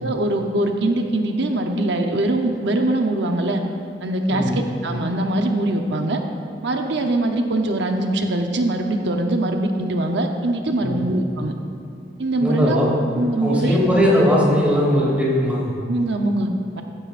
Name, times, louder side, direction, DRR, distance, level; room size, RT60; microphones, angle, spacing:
voice 1, 0.0-3.6 4.0-6.2 6.6-11.5 12.2-12.8 13.2-13.8 15.9-16.8, right 1 dB, 70° right, 4 dB, 0.8 m, -22 dB
voice 2, 4.3-4.6 10.8-11.1 12.4-12.9 13.4-15.7, equal, 10° right, -5 dB, 2.7 m, -19 dB
15.0 x 13.5 x 2.6 m, 2.5 s
head